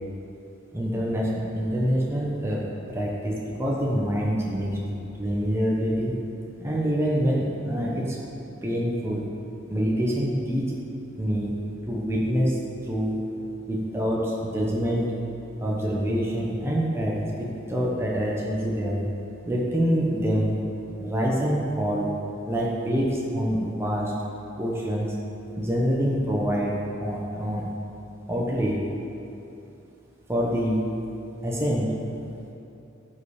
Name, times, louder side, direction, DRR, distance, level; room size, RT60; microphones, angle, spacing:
voice 1, 0.7-2.6 2.9-6.1 6.6-8.2 8.6-9.2 9.7-10.8 11.2-11.5 11.9-12.6 12.8-13.2 13.7-15.1 15.6-19.0 19.5-20.5 21.0-22.1 22.5-24.1 24.6-25.1 25.6-26.7 27.0-27.6 28.3-28.8 30.3-30.8 31.4-31.9, equal, 15° right, -4 dB, 1.1 m, -26 dB
14.5 x 5.5 x 5.0 m, 2.8 s
head